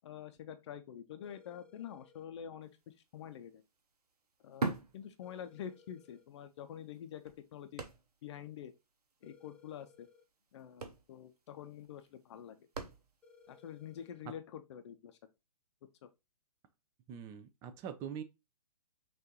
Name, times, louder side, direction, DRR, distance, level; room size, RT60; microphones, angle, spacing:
voice 1, 0.0-3.6 4.4-7.8 8.2-8.7 9.2-10.1 10.5-12.6 13.5-15.2 16.0-16.1, left 9 dB, 45° left, 0.6 m, -47 dB
sound 1, 1.2-2.3 5.2-6.3 9.2-10.3 13.2-14.3, left 5 dB, 5° left, 1.1 m, -62 dB
sound 2, 2.8-3.0 3.2-5.9 6.2-6.3 6.9-8.4 8.7-8.8 9.0-9.3 10.2-10.3 10.6-13.4 14.0-14.1, right 3 dB, 80° right, 0.9 m, -42 dB
voice 2, 17.1-18.2, right 8 dB, 15° right, 0.4 m, -43 dB
6.0 x 2.6 x 2.8 m
hypercardioid pair, 130°, 20 cm